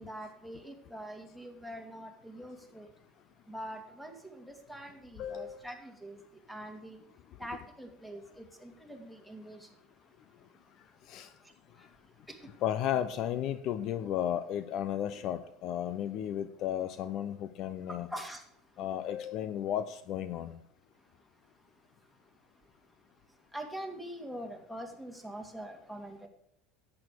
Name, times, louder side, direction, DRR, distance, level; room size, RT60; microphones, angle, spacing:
voice 1, 0.0-2.9 3.5-6.2 6.5-7.0 7.4-9.7 12.3-12.4 18.1-18.4 23.5-26.3, equal, ahead, 5 dB, 2.5 m, -44 dB
voice 2, 5.2-5.6 11.1-11.3 12.6-18.1 18.8-20.6, left 10 dB, 55° left, 13 dB, 0.7 m, -34 dB
11.0 x 8.6 x 4.7 m, 0.75 s
hypercardioid pair, 90°, 0 cm